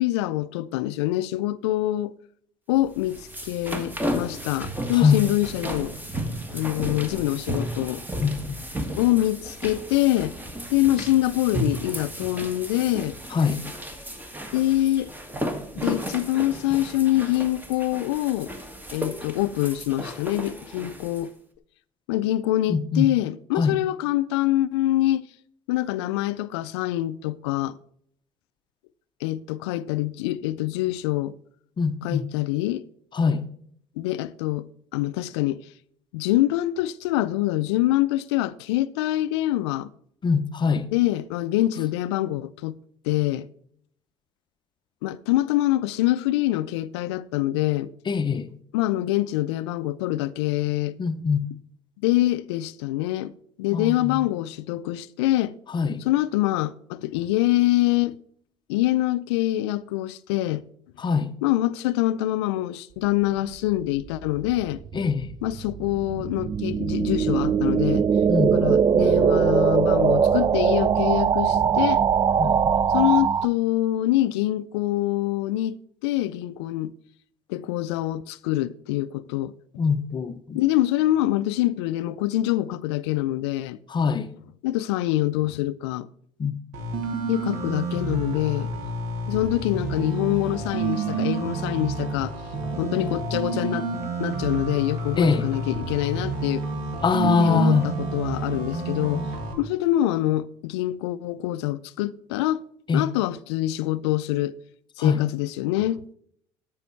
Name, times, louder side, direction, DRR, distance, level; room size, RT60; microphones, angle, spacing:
voice 1, 0.0-2.2 2.7-5.9 6.5-8.0 9.0-10.3 10.7-13.1 14.5-15.1 15.7-18.5 18.9-21.3 22.1-25.2 25.7-27.8 29.2-31.3 32.0-32.8 34.0-35.6 36.1-39.9 40.9-42.8 43.0-43.5 45.0-47.9 48.7-51.0 52.0-53.3 53.6-55.5 56.0-58.2 58.7-60.6 61.4-64.8 65.4-68.1 68.5-72.0 72.9-76.9 77.5-79.5 80.5-83.8 84.6-86.1 87.3-88.7 89.3-92.3 92.8-93.9 94.2-96.7 97.2-99.3 99.6-102.6 102.9-104.5 105.0-106.1, left 15 dB, 80° left, 0.4 m, -25 dB
sound 1, 2.9-21.3, equal, 15° right, 1.7 m, -34 dB
voice 2, 8.2-8.6 13.3-13.6 22.7-23.1 23.5-23.8 31.8-32.2 33.1-33.4 40.2-40.9 48.1-48.5 51.0-51.5 53.7-54.2 55.7-56.0 61.0-61.3 64.9-65.3 68.3-68.5 72.4-72.5 79.8-80.6 83.9-84.3 86.4-86.6 95.2-95.5 97.0-97.9 102.9-103.1 105.0-105.2, left 5 dB, 35° left, 0.7 m, -23 dB
sound 2, 64.1-73.5, right 7 dB, 30° right, 0.4 m, -21 dB
sound 3, 86.7-99.5, right 4 dB, 70° right, 2.2 m, -29 dB
13.0 x 5.4 x 4.4 m
hypercardioid pair, 70°, 14 cm